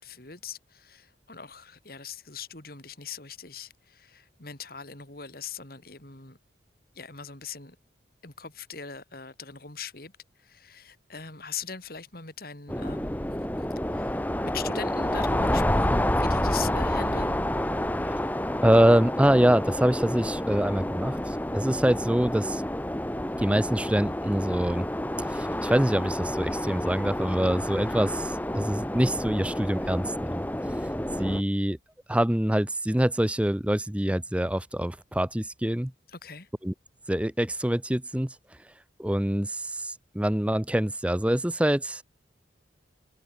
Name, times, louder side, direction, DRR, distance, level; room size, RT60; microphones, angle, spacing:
voice 1, 0.0-6.4 6.9-7.8 8.2-13.7 13.9-17.4 36.1-36.5, left 6 dB, 50° left, 2.8 m, -41 dB
sound 1, 12.7-31.4, left 1 dB, 10° left, 1.0 m, -29 dB
voice 2, 18.6-22.6 23.4-24.9 25.3-30.4 31.2-31.8 32.1-35.9 36.6-36.7 37.1-38.4 39.0-42.0, right 1 dB, 5° right, 0.6 m, -25 dB
head